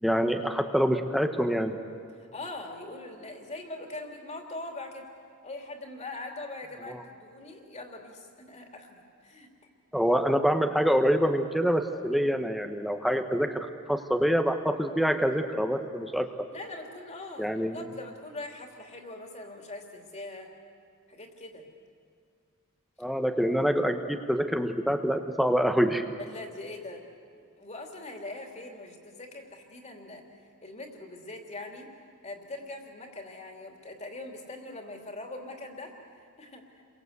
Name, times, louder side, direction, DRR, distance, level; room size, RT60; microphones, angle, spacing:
voice 1, 0.0-1.8 6.9-7.0 9.9-16.3 17.4-17.8 23.0-26.0, equal, ahead, 6 dB, 1.1 m, -26 dB
voice 2, 2.2-5.1 5.4-9.5 16.5-20.5 21.1-21.6 26.2-27.0 27.3-30.2 30.6-31.9 32.2-36.8, left 2 dB, 30° left, 3 dB, 3.1 m, -42 dB
30.0 x 23.5 x 8.2 m, 2.3 s
head